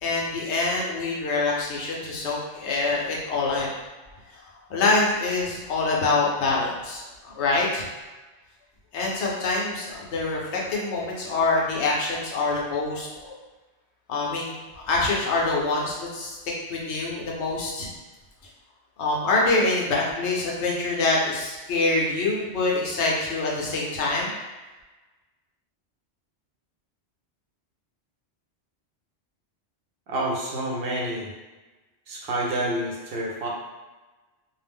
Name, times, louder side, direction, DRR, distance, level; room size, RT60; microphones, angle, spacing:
voice 1, 0.0-3.7 4.3-7.9 8.9-13.3 14.1-16.4 16.7-17.9 19.0-24.3, left 3 dB, 80° left, -3 dB, 1.0 m, -25 dB
voice 2, 30.1-31.3 32.1-33.5, right 1 dB, 65° right, -3 dB, 0.7 m, -28 dB
2.4 x 2.0 x 3.4 m, 1.2 s
omnidirectional pair, 1.1 m